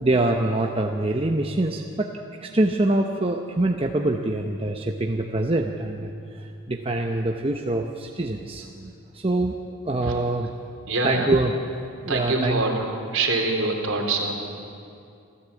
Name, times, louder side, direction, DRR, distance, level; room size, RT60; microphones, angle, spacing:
voice 1, 0.0-2.1 2.4-9.6 9.8-10.5 11.0-11.5 12.0-12.6, right 2 dB, 25° right, 2 dB, 0.8 m, -25 dB
voice 2, 10.9-11.3 12.1-14.3, right 3 dB, 60° right, 2 dB, 3.4 m, -25 dB
27.0 x 14.5 x 8.4 m, 2.5 s
head